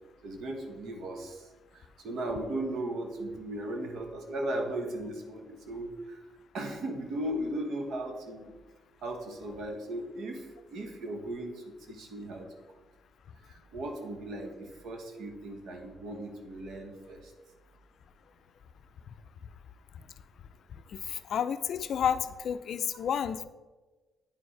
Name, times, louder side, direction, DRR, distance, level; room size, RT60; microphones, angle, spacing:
voice 1, 0.2-1.4 1.7-6.2 6.5-8.6 9.0-12.5 13.5-17.3, right 1 dB, 70° right, 3 dB, 1.1 m, -37 dB
voice 2, 20.9-23.4, left 8 dB, 65° left, 13 dB, 0.3 m, -31 dB
9.5 x 4.5 x 3.2 m, 1.2 s
cardioid pair, 90°, 0 cm